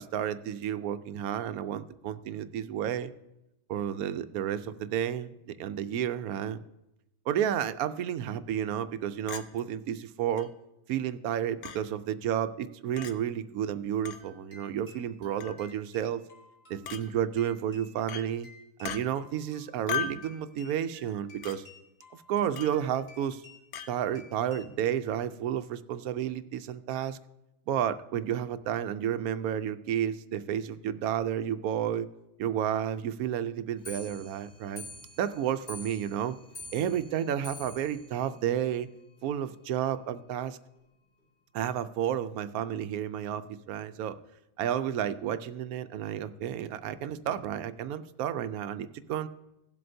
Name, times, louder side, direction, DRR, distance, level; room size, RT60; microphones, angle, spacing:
voice 1, 0.0-3.1 3.7-5.3 5.6-6.6 7.3-10.5 10.9-16.2 16.7-18.5 18.8-21.6 22.3-23.4 23.9-27.2 27.7-32.1 32.4-34.8 35.2-36.4 36.7-38.9 39.2-40.6 41.5-44.1 44.6-49.3, right 10 dB, 75° right, 12 dB, 1.0 m, -31 dB
Chink clink, 9.3-9.5 10.4-10.5 11.6-11.8 13.0-13.1 14.1-14.2 15.4-15.6 16.9-17.0 18.1-18.3 18.8-19.0 19.9-20.2 21.4-21.6 22.6-22.8 23.7-23.9, left 8 dB, 90° left, 1.2 m, -35 dB
sound 1, 14.2-24.8, left 2 dB, 30° left, 2.1 m, -56 dB
Clock, 33.8-39.3 39.6-39.7 40.0-40.1 40.4-40.5 40.8-40.9 41.6-41.7 42.4-42.5 43.1-43.2, left 2 dB, 45° left, 2.2 m, -48 dB
17.5 x 7.7 x 2.7 m, 0.89 s
omnidirectional pair, 1.6 m